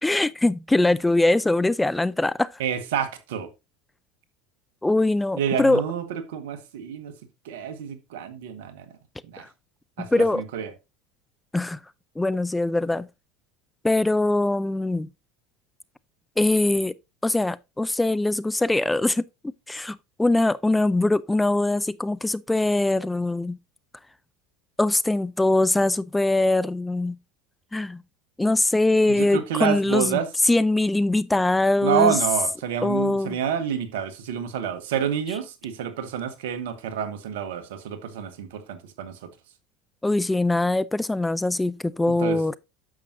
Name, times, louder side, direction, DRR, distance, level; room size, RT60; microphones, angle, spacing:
voice 1, 0.0-2.5 4.8-5.8 9.4-9.5 10.0-10.4 11.5-11.8 12.2-13.1 13.8-15.1 16.4-16.9 17.2-19.2 19.7-23.6 24.8-27.2 27.7-28.0 28.4-30.2 30.5-32.1 32.8-33.4 40.0-42.6, left 2 dB, 10° left, 0.5 m, -22 dB
voice 2, 2.6-3.5 5.4-7.2 7.4-8.9 9.2-9.4 10.0-10.7 29.1-30.3 31.8-39.3 42.1-42.4, right 8 dB, 75° right, 1.6 m, -28 dB
10.0 x 7.3 x 2.7 m
hypercardioid pair, 80°, 0 cm